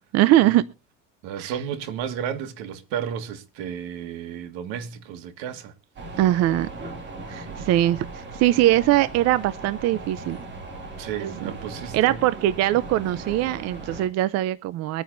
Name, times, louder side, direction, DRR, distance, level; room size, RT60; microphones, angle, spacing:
voice 1, 0.1-0.6 1.4-1.6 6.2-6.7 7.3-10.4 11.2-11.5 11.9-15.0, right 14 dB, 45° right, 0.6 m, -21 dB
voice 2, 1.2-5.7 7.5-7.6 11.0-12.2, right 8 dB, 75° right, 1.9 m, -33 dB
sound 1, 6.0-14.1, right 2 dB, 30° right, 2.6 m, -38 dB
23.5 x 9.4 x 2.6 m
cardioid pair, 150°, 36 cm